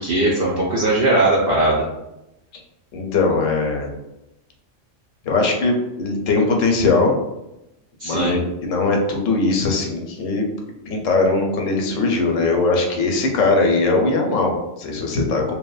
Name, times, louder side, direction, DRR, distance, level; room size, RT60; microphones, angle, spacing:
voice 1, 0.0-1.9 8.0-8.4, right 2 dB, 60° right, -4 dB, 0.6 m, -19 dB
voice 2, 2.9-3.9 5.2-7.2 8.0-10.4 10.9-15.5, left 3 dB, 90° left, 2 dB, 1.0 m, -20 dB
3.1 x 2.1 x 2.3 m, 0.89 s
omnidirectional pair, 1.3 m